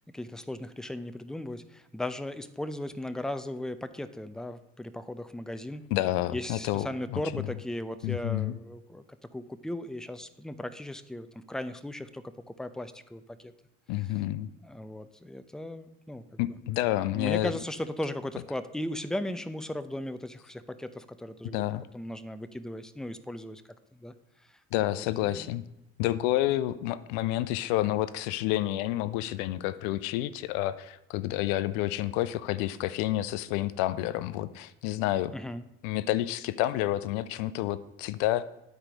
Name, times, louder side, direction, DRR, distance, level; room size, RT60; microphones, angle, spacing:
voice 1, 0.1-5.8 6.3-9.0 9.3-13.5 14.6-16.5 17.1-21.6 21.9-23.6 23.9-24.1 24.5-24.6 24.9-25.6 26.6-26.7 35.3-35.6, left 1 dB, ahead, 11 dB, 0.6 m, -37 dB
voice 2, 5.9-7.5 8.0-8.6 13.9-14.5 16.4-17.5 21.4-21.9 24.7-25.6 26.0-35.3 35.8-38.4, left 15 dB, 85° left, 15 dB, 0.5 m, -29 dB
9.6 x 4.5 x 5.1 m, 0.86 s
hypercardioid pair, 55°, 33 cm